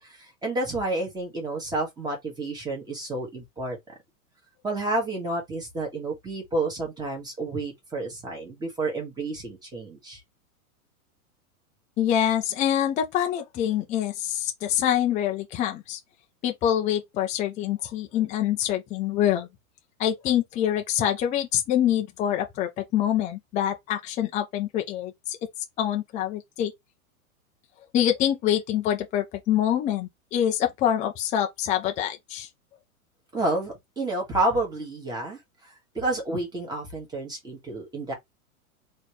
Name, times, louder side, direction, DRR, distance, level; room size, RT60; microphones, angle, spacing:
voice 1, 0.0-3.8 4.6-10.2 33.3-38.1, right 2 dB, 10° right, 1.8 m, -30 dB
voice 2, 12.0-16.0 16.4-19.5 20.0-25.4 25.8-26.7 27.9-32.5, left 10 dB, 15° left, 0.6 m, -25 dB
4.1 x 3.1 x 3.3 m
supercardioid pair, 150°, 44 cm